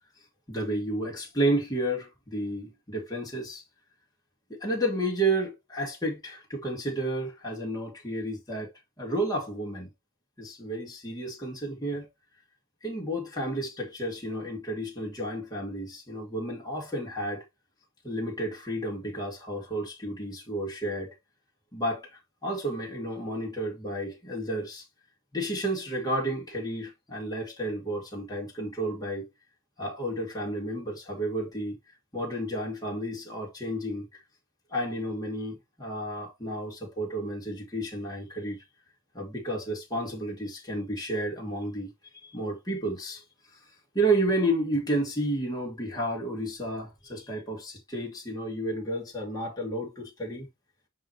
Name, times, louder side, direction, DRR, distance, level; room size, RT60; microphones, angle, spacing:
voice 1, 0.5-3.6 4.5-8.7 9.0-9.9 10.4-12.1 12.8-17.4 18.0-21.1 21.7-22.1 22.4-24.8 25.3-29.2 29.8-31.8 32.1-34.2 34.7-38.6 39.1-43.2 43.9-50.5, right 1 dB, 20° left, 2.4 m, -31 dB
9.5 x 3.3 x 4.4 m
head